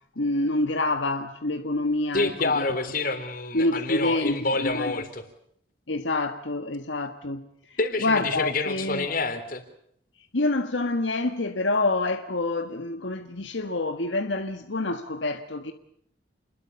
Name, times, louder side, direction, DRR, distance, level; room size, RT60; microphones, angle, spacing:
voice 1, 0.1-2.7 3.5-5.0 5.9-9.1 10.3-15.7, left 2 dB, 80° left, 1.5 m, -27 dB
voice 2, 2.1-5.2 7.8-9.6, left 3 dB, 50° left, 3.7 m, -27 dB
29.0 x 21.5 x 6.9 m
head